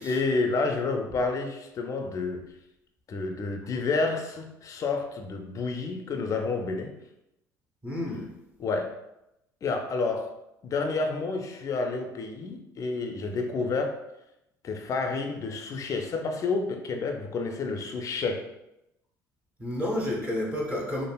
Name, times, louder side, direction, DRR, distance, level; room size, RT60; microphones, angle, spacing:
voice 1, 0.0-2.4 3.1-6.9 8.6-8.9 9.6-10.3 10.6-14.0 14.6-18.5, left 3 dB, 35° left, 4 dB, 0.4 m, -29 dB
voice 2, 7.8-8.3 19.6-21.0, left 1 dB, 15° right, -1 dB, 0.6 m, -30 dB
3.3 x 2.0 x 2.2 m, 0.87 s
hypercardioid pair, 65°, 9 cm